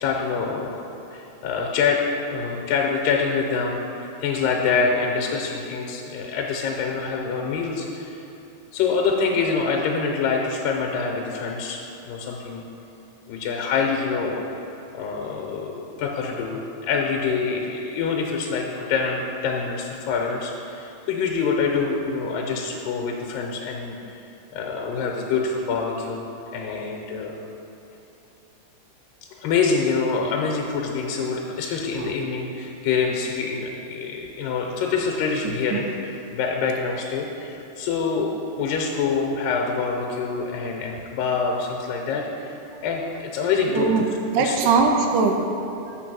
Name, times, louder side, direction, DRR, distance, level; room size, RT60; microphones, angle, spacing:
voice 1, 0.0-0.8 1.1-8.3 8.7-12.6 13.3-14.4 14.9-24.3 24.5-27.3 29.4-42.5 42.8-44.1 44.4-44.6, left 5 dB, 90° left, 0 dB, 2.3 m, -26 dB
voice 2, 43.7-44.0 44.3-46.0, right 4 dB, 80° right, 3 dB, 1.9 m, -21 dB
7.0 x 4.6 x 6.0 m, 2.9 s
omnidirectional pair, 3.9 m